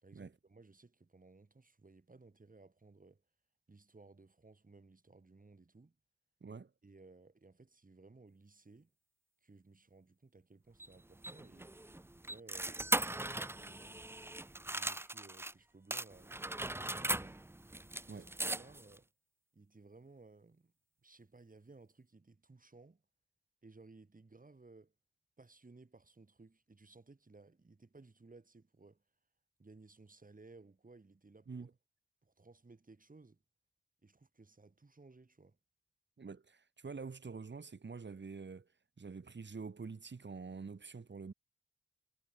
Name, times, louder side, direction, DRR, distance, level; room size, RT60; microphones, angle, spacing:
voice 1, 0.0-3.2 3.7-6.0 6.8-8.9 9.4-11.7 12.2-14.4 14.7-17.4 18.1-19.1 19.5-20.7 21.0-23.0 23.6-24.9 25.4-29.0 29.6-31.7 32.2-33.4 34.0-35.6, right 3 dB, 45° right, 5.8 m, -60 dB
voice 2, 6.4-6.7 18.1-18.3 31.5-31.7 36.2-38.7 39.0-41.3, right 4 dB, 60° right, 4.0 m, -46 dB
sound 1, 10.8-15.5 15.9-19.0, right 1 dB, 10° right, 0.6 m, -39 dB
cardioid pair, 50°, 20 cm